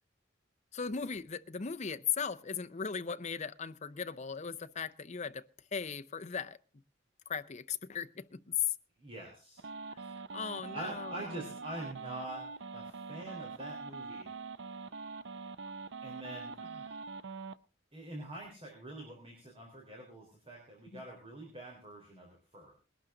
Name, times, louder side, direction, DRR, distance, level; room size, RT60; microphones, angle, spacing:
voice 1, 0.7-5.5 5.7-6.6 7.3-8.7 10.3-11.1 20.9-21.0, left 7 dB, 40° left, 0.6 m, -37 dB
voice 2, 9.0-9.6 10.3-10.4 10.7-14.3 16.0-16.7 17.9-22.7, right 1 dB, 30° right, 3.9 m, -45 dB
sound 1, 9.6-17.6, right 4 dB, 65° right, 0.6 m, -44 dB
20.5 x 12.0 x 3.8 m
head